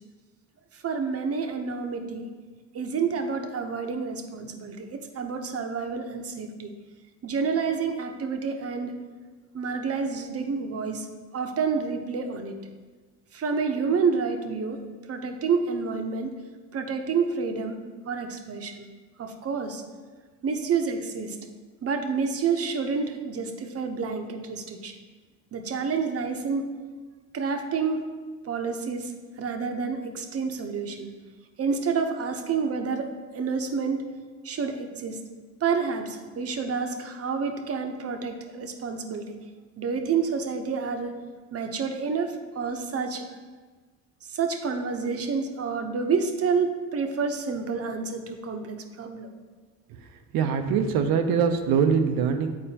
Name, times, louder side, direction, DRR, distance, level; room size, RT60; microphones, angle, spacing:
voice 1, 0.8-2.3 2.7-6.7 7.2-9.0 9.5-11.1 11.3-12.6 13.3-14.8 15.1-16.3 16.7-17.8 18.1-18.8 19.2-19.8 20.4-21.4 21.8-24.9 25.5-26.7 27.3-28.0 28.4-29.1 29.4-31.1 31.6-34.0 34.4-35.2 35.6-39.4 39.8-41.1 41.5-43.3 44.3-49.3, right 5 dB, 40° right, 5 dB, 0.8 m, -29 dB
voice 2, 50.3-52.5, right 6 dB, 85° right, 7 dB, 0.7 m, -23 dB
8.7 x 4.3 x 2.8 m, 1.4 s
cardioid pair, 90°, 35 cm